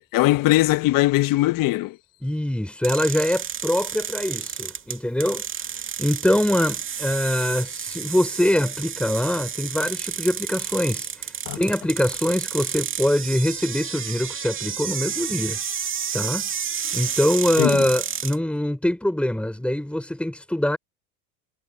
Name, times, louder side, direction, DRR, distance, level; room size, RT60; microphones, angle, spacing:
voice 1, 0.0-2.0 11.5-11.6 17.6-17.9, left 17 dB, 45° left, 1.5 m, -20 dB
voice 2, 2.2-5.5 6.0-15.6 16.1-16.5 16.9-20.8, left 1 dB, ahead, 5.6 m, -23 dB
sound 1, 2.8-18.4, right 8 dB, 25° right, 2.4 m, -31 dB
hypercardioid pair, 95°, 45 cm